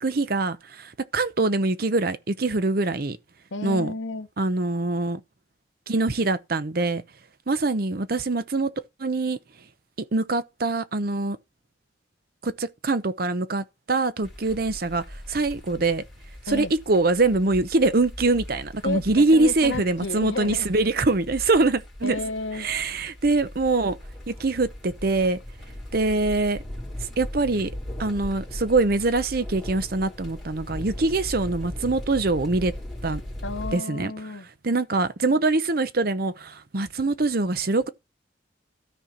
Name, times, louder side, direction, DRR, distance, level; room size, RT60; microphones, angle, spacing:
voice 1, 0.0-3.2 3.6-3.9 4.4-5.2 5.9-7.0 7.5-8.7 9.0-9.4 10.1-11.4 12.4-16.0 16.5-22.2 22.5-24.0 24.3-25.4 25.9-26.6 27.0-27.7 28.0-32.7 33.0-33.2 33.7-34.1 34.6-37.9, right 3 dB, 55° right, 0.8 m, -24 dB
voice 2, 3.5-4.3 16.5-16.7 18.8-20.7 22.0-22.7 33.4-34.5, left 3 dB, 85° left, 0.9 m, -32 dB
sound 1, 14.2-33.7, left 1 dB, ahead, 3.3 m, -39 dB
13.0 x 4.4 x 5.8 m
head